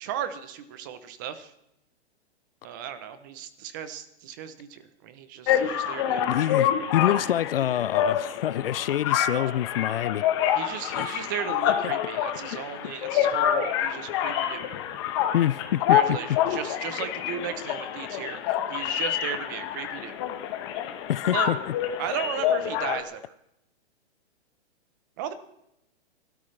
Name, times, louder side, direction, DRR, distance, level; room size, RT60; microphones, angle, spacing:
voice 1, 0.0-1.5 2.6-6.3 10.5-14.7 15.9-18.4 18.7-20.2 21.2-21.5 22.0-23.3 25.2-25.3, right 9 dB, 20° right, 0.6 m, -35 dB
sound 1, 5.5-23.0, left 10 dB, 25° left, 1.1 m, -27 dB
voice 2, 6.3-10.2 10.9-11.1 11.8-11.9 12.5-13.0 15.3-16.2 21.1-21.6, left 12 dB, 60° left, 0.4 m, -26 dB
29.0 x 13.0 x 3.2 m
hypercardioid pair, 170°, 33 cm